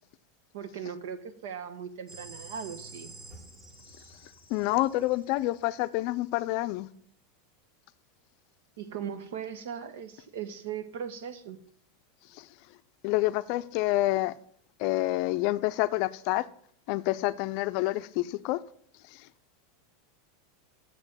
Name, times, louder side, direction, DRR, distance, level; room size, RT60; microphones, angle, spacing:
voice 1, 0.5-3.1 8.8-11.6, right 8 dB, 75° right, 1.2 m, -38 dB
sound 1, 2.1-5.8, right 2 dB, 20° right, 2.0 m, -49 dB
voice 2, 4.5-6.9 12.4-12.5 13.0-14.3 14.8-16.5 16.9-18.6 19.1-19.2, left 17 dB, 45° left, 0.5 m, -28 dB
7.3 x 6.7 x 7.3 m
supercardioid pair, 170°, 0 cm